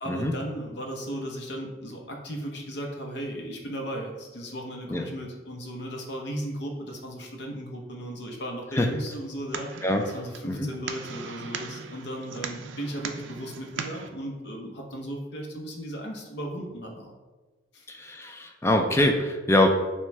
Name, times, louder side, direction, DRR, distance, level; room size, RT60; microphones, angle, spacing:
voice 1, 0.0-9.7 10.1-17.1 17.7-17.9, right 1 dB, 55° left, 1 dB, 0.7 m, -36 dB
sound 1, 9.1-14.1, right 6 dB, 70° right, 0.4 m, -39 dB
voice 2, 17.9-19.7, left 1 dB, 15° left, 4 dB, 0.3 m, -24 dB
6.0 x 2.2 x 3.2 m, 1.2 s
head